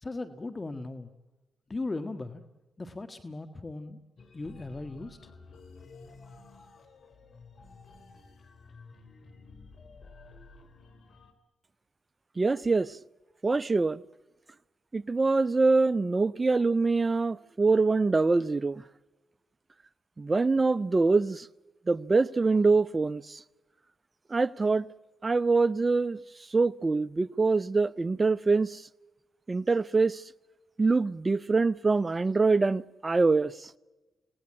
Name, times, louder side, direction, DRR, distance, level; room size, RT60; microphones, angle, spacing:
voice 1, 0.0-1.1 1.7-2.4 2.8-4.0 4.3-5.3, left 2 dB, 35° left, 1.6 m, -37 dB
sound 1, 4.2-11.3, left 3 dB, 65° left, 3.0 m, -52 dB
voice 2, 12.4-13.0 13.4-14.0 14.9-18.8 20.2-21.5 21.9-23.4 24.3-24.8 25.2-26.2 26.5-28.8 29.5-30.2 30.8-33.7, right 3 dB, 35° right, 0.8 m, -24 dB
28.0 x 18.5 x 8.9 m
supercardioid pair, 40°, 0 cm